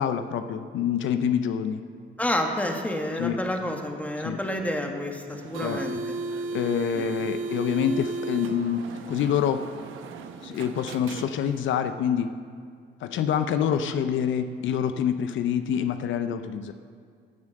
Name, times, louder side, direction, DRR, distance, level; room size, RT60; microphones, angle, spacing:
voice 1, 0.0-1.8 3.2-3.4 4.2-4.4 5.6-5.8 6.3-9.6 10.4-12.3 13.0-16.7, left 8 dB, 75° left, 9 dB, 0.6 m, -26 dB
voice 2, 2.2-6.0 6.9-7.0, left 1 dB, 5° left, 2 dB, 1.6 m, -29 dB
sound 1, 5.3-11.7, right 3 dB, 85° right, 0.9 m, -35 dB
15.5 x 7.1 x 6.6 m, 2.2 s
cardioid pair, 90°, 20 cm